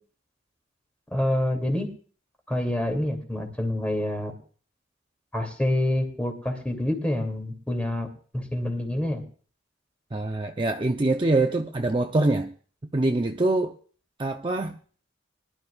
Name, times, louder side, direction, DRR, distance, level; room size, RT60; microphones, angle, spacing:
voice 1, 1.1-1.9 2.5-4.3 5.3-8.1 8.3-9.2, left 1 dB, 5° left, 3 dB, 2.5 m, -27 dB
voice 2, 10.1-12.5 12.9-13.7 14.2-14.8, right 2 dB, 25° right, 4 dB, 0.6 m, -24 dB
23.0 x 12.0 x 2.4 m, 0.41 s
head